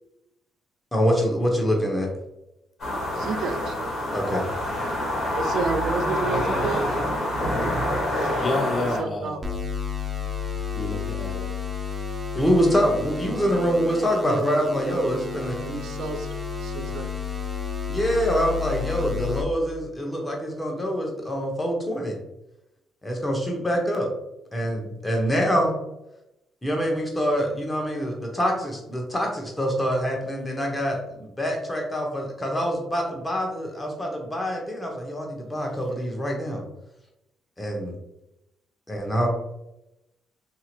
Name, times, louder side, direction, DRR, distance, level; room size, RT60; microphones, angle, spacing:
voice 1, 0.9-2.1 4.1-4.4 12.3-15.5 17.9-22.2 23.0-24.1 24.5-25.8 26.6-36.6 37.6-37.9 38.9-39.3, equal, 15° left, 0 dB, 1.0 m, -25 dB
sound 1, 2.8-9.0, left 1 dB, 55° left, 1.4 m, -26 dB
voice 2, 3.2-3.9 5.3-6.9 9.0-9.4 14.3-14.6 14.9-15.2 15.6-16.3 16.6-17.1, right 4 dB, 65° right, 6 dB, 0.3 m, -30 dB
voice 3, 8.4-9.4 10.7-11.5, left 2 dB, 40° left, 3 dB, 0.5 m, -29 dB
sound 2, 9.4-19.4, left 5 dB, 20° right, 0.8 m, -31 dB
2.9 x 2.8 x 2.5 m, 0.87 s
hypercardioid pair, 55°, 0 cm